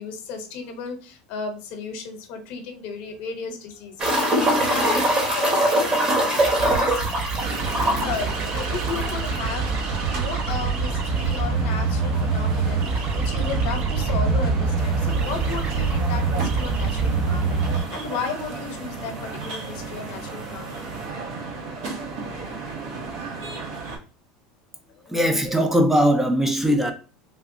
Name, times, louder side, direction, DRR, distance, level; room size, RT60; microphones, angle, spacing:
voice 1, 0.0-7.4 8.0-20.9 25.0-25.2, left 5 dB, 65° left, 0.8 m, -35 dB
sound 1, 4.0-9.4 9.7-9.8 10.1-10.2 13.0-13.1 14.8-14.9 15.6-15.7 16.0-16.1 17.0-17.1 17.2-17.8 18.8-18.9, right 1 dB, 30° right, 1.2 m, -23 dB
sound 2, 6.4-17.8, right 4 dB, 45° right, 0.7 m, -25 dB
sound 3, 7.4-24.0, right 3 dB, 70° right, 1.1 m, -33 dB
voice 2, 25.1-26.9, equal, 10° right, 0.4 m, -20 dB
3.3 x 2.3 x 2.6 m
supercardioid pair, 100°, 3 cm